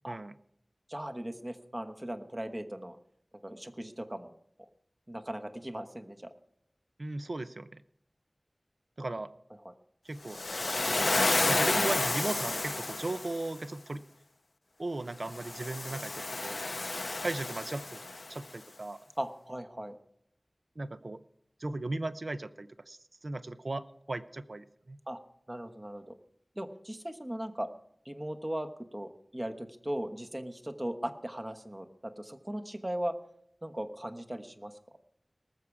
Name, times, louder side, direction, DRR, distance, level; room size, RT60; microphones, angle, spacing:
voice 1, 0.9-3.0 3.4-4.4 5.1-6.2 9.6-9.7 19.2-20.0 25.1-25.2 25.5-26.1 26.6-27.7 28.0-33.1 33.6-34.7, right 1 dB, 30° right, 8 dB, 1.1 m, -38 dB
voice 2, 7.0-7.8 9.0-9.3 10.0-10.4 11.4-14.0 14.8-16.6 17.2-18.0 18.3-19.0 20.8-21.2 21.6-25.0, right 2 dB, 70° right, 13 dB, 0.6 m, -37 dB
Waves surf, 10.3-13.5 15.3-18.4, left 2 dB, 70° left, 0.4 m, -31 dB
19.0 x 7.2 x 4.8 m, 0.69 s
wide cardioid pair, 55°, 0 cm